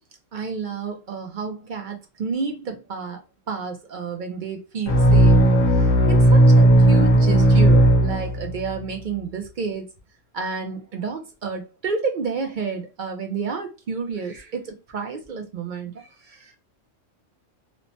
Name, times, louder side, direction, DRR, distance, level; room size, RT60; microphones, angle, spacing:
voice 1, 0.3-3.2 3.5-5.4 5.8-9.9 10.3-16.6, right 5 dB, 60° right, 0.5 m, -30 dB
sound 1, 4.9-8.7, right 1 dB, 65° left, 1.1 m, -15 dB
3.1 x 2.1 x 2.6 m
omnidirectional pair, 1.3 m